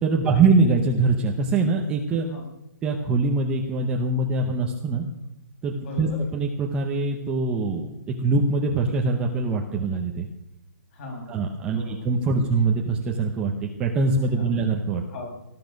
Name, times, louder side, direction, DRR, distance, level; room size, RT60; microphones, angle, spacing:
voice 1, 0.0-2.3 2.8-5.1 5.6-10.3 11.3-15.0, right 3 dB, 10° right, 0 dB, 0.9 m, -23 dB
voice 2, 2.2-2.5 5.8-6.2 10.9-11.4 11.7-12.4 14.3-14.6 15.1-15.3, left 2 dB, 35° left, 1 dB, 5.9 m, -38 dB
20.0 x 12.5 x 5.3 m, 0.92 s
hypercardioid pair, 170°, 11 cm